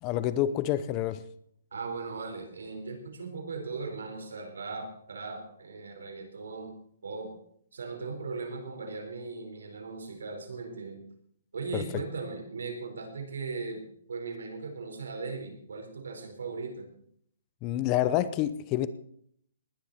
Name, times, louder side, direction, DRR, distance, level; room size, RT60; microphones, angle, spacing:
voice 1, 0.0-1.2 11.7-12.0 17.6-18.9, left 12 dB, 25° left, 14 dB, 0.7 m, -28 dB
voice 2, 1.7-6.8 7.0-7.3 7.7-11.0 11.5-13.8 14.1-16.9, right 4 dB, 85° right, 3 dB, 4.5 m, -38 dB
19.0 x 10.0 x 4.3 m, 0.67 s
hypercardioid pair, 160°, 0 cm